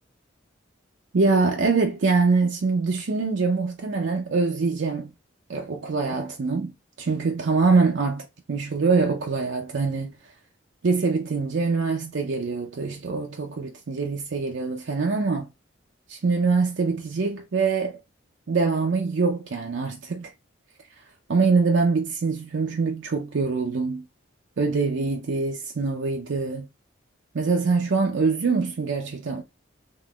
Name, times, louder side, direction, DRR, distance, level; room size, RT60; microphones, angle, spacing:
voice 1, 1.1-5.1 5.5-6.7 7.0-10.1 10.8-15.5 16.1-18.0 18.5-20.3 21.3-24.0 24.6-26.7 27.3-29.4, right 4 dB, 70° right, 0.5 m, -24 dB
3.7 x 2.8 x 2.3 m
head